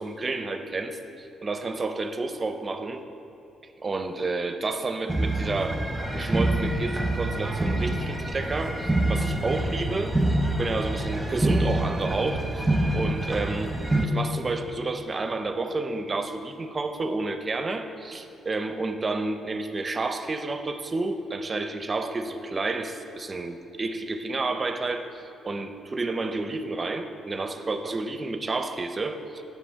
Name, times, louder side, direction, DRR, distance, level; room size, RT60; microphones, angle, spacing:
voice 1, 0.0-3.0 3.8-5.8 6.1-10.2 10.6-12.7 12.9-13.7 14.0-29.4, right 3 dB, 30° right, 8 dB, 0.5 m, -30 dB
sound 1, 5.1-14.1, right 1 dB, 5° right, 0.8 m, -26 dB
8.5 x 5.7 x 4.5 m, 2.7 s
cardioid pair, 90°, 0 cm